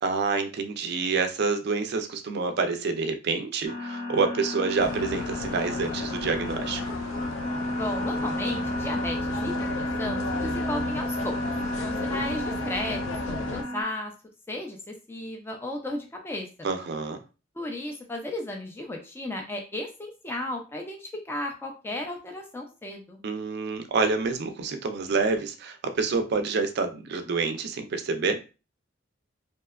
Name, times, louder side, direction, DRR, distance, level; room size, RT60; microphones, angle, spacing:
voice 1, 0.0-6.9 16.6-17.2 23.2-28.4, right 4 dB, 60° right, 0.4 m, -27 dB
sound 1, 3.6-13.8, left 1 dB, 40° left, 0.7 m, -32 dB
sound 2, 4.8-13.6, left 3 dB, 85° left, 0.4 m, -35 dB
voice 2, 7.8-11.4 11.8-14.1 14.5-16.7 17.6-23.2, left 1 dB, 10° left, 0.4 m, -34 dB
2.7 x 2.2 x 2.2 m
head